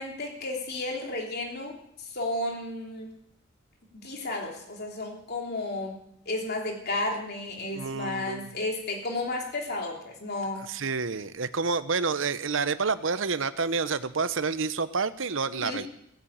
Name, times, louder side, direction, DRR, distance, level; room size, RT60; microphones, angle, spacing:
voice 1, 0.0-1.8 2.1-3.1 4.0-10.7 15.6-15.8, left 2 dB, 50° left, 1 dB, 3.2 m, -33 dB
voice 2, 7.7-8.5 10.6-15.9, right 4 dB, 70° right, 14 dB, 0.9 m, -29 dB
17.5 x 9.2 x 8.8 m, 0.75 s
head